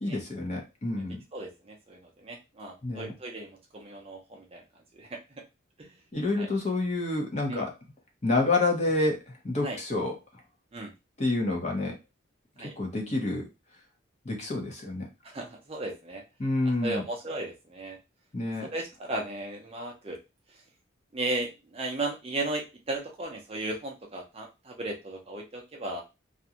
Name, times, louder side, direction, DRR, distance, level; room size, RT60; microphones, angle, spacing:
voice 1, 0.0-1.2 2.8-3.1 6.1-7.7 8.2-10.2 11.2-12.0 12.8-13.4 14.2-15.1 16.4-17.0 18.3-18.7, left 2 dB, 35° left, 1 dB, 0.7 m, -28 dB
voice 2, 1.3-4.6 4.9-5.2 5.8-5.9 6.4-6.5 7.5-7.7 9.6-9.8 10.7-10.9 12.6-12.8 15.2-16.2 16.8-18.0 18.6-20.2 21.1-26.0, right 2 dB, 30° right, 1 dB, 0.5 m, -35 dB
2.4 x 2.2 x 2.8 m, 0.25 s
head